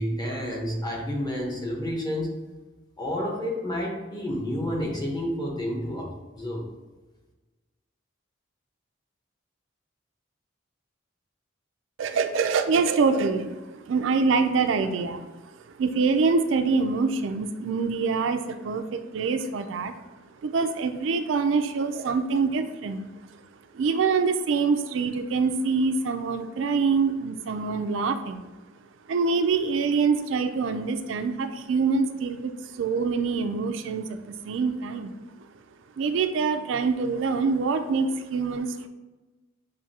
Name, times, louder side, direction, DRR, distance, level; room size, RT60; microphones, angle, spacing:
voice 1, 0.0-2.3 3.0-6.1 6.3-6.6, equal, 20° left, -2 dB, 1.0 m, -30 dB
voice 2, 12.0-15.2 15.8-19.9 20.4-23.1 23.7-28.5 29.1-35.1 36.0-38.9, right 4 dB, 80° right, 7 dB, 0.4 m, -25 dB
7.1 x 2.7 x 2.8 m, 1.2 s
head